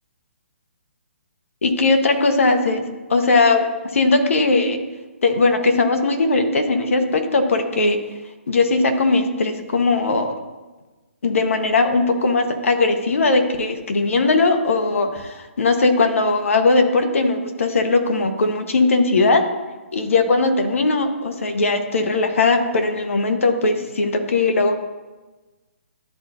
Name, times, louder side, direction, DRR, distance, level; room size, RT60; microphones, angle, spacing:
voice 1, 1.6-2.8 3.1-3.6 3.9-4.8 5.2-8.0 8.5-10.3 11.2-19.4 19.9-24.8, left 3 dB, 75° left, 5 dB, 1.1 m, -19 dB
12.0 x 4.1 x 2.6 m, 1.2 s
hypercardioid pair, 150°, 7 cm